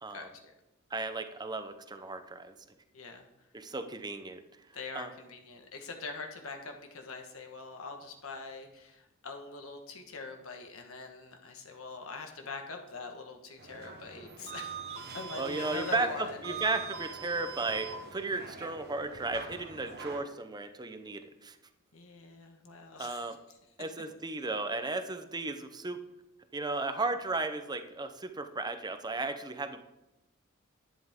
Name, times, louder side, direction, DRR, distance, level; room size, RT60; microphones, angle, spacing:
voice 1, 0.1-0.5 2.9-3.3 4.7-16.6 21.9-23.3, left 4 dB, 70° left, 3 dB, 1.4 m, -43 dB
voice 2, 0.9-2.5 3.5-4.4 4.9-5.1 15.4-21.6 23.0-23.4 23.8-26.0 26.5-29.8, right 3 dB, 20° right, 8 dB, 0.7 m, -35 dB
sound 1, 13.6-20.2, right 5 dB, 50° right, 1.2 m, -43 dB
11.0 x 10.5 x 3.7 m, 0.93 s
head